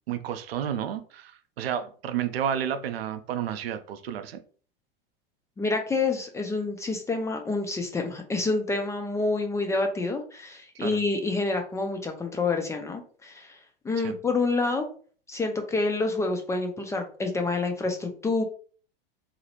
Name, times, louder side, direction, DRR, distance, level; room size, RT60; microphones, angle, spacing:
voice 1, 0.1-4.4 10.7-11.0 14.0-14.2, right 9 dB, 85° right, 10 dB, 0.5 m, -31 dB
voice 2, 5.6-13.6 13.8-14.9 15.3-18.4, left 3 dB, 10° left, 4 dB, 0.3 m, -28 dB
2.4 x 2.0 x 2.9 m, 0.43 s
hypercardioid pair, 100°, 29 cm